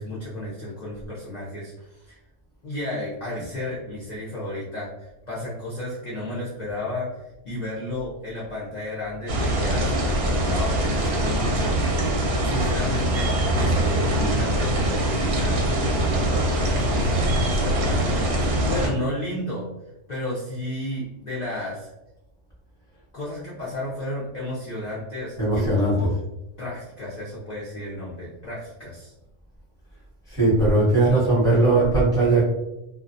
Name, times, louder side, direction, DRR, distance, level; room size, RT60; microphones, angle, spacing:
voice 1, 0.0-2.2 2.6-7.1 7.4-12.1 12.4-19.6 20.1-21.9 23.1-26.1 26.6-29.1, left 1 dB, 50° left, -7 dB, 0.5 m, -33 dB
sound 1, 9.3-18.9, right 1 dB, 65° right, 0.7 m, -23 dB
voice 2, 25.4-26.0 30.3-32.4, right 2 dB, 5° left, -6 dB, 0.7 m, -19 dB
2.3 x 2.1 x 2.5 m, 0.94 s
omnidirectional pair, 1.3 m